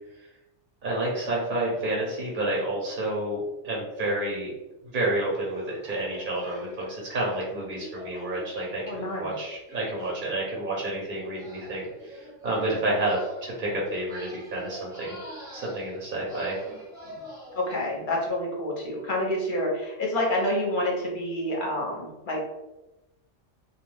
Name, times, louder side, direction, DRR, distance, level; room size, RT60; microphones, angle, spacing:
voice 1, 0.8-4.5 4.9-15.2 15.5-16.6, right 1 dB, 50° right, -4 dB, 0.7 m, -30 dB
sound 1, 5.3-18.3, equal, 5° right, 0.5 m, -45 dB
voice 2, 8.8-9.2 12.6-12.9 17.5-22.4, left 1 dB, 50° left, -2 dB, 0.7 m, -28 dB
2.3 x 2.2 x 3.1 m, 0.98 s
omnidirectional pair, 1.2 m